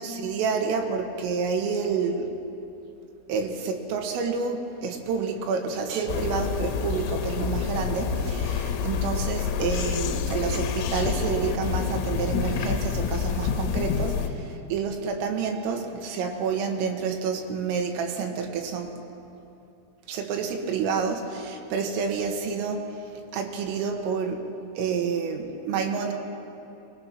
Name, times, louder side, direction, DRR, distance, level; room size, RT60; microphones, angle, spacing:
voice 1, 0.0-2.3 3.3-18.9 20.1-24.5 24.8-26.1, right 5 dB, 75° right, 3 dB, 4.0 m, -29 dB
sound 1, 6.1-14.3, left 6 dB, 90° left, 3.8 m, -28 dB
23.0 x 20.0 x 5.9 m, 3.0 s
omnidirectional pair, 6.0 m